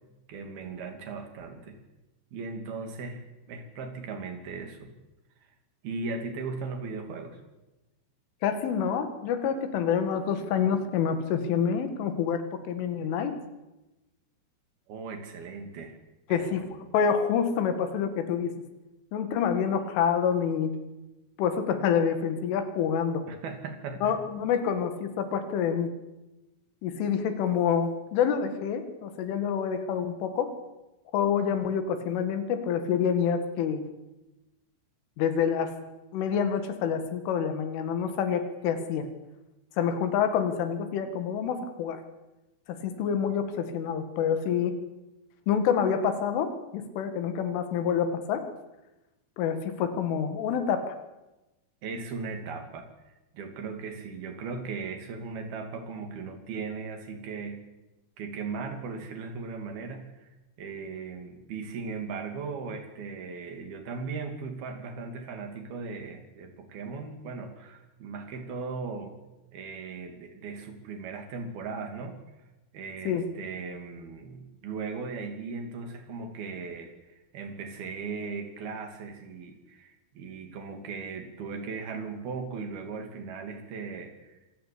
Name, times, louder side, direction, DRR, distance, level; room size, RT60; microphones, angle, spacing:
voice 1, 0.3-1.8 2.3-3.2 3.5-4.9 5.8-7.4 14.9-16.0 16.3-16.7 23.3-24.1 51.8-52.9 53.3-57.6 58.2-69.1 69.5-72.2 72.7-84.4, right 4 dB, 55° right, 6 dB, 4.3 m, -38 dB
voice 2, 8.4-13.4 16.3-18.5 19.1-20.7 21.4-23.2 24.0-25.9 26.8-30.5 31.1-33.8 35.2-35.7 36.1-39.1 39.8-42.0 42.7-44.7 45.5-48.4 49.4-51.0 73.1-73.2, left 7 dB, 85° left, 8 dB, 4.5 m, -27 dB
26.0 x 15.5 x 8.5 m, 1.0 s
omnidirectional pair, 5.5 m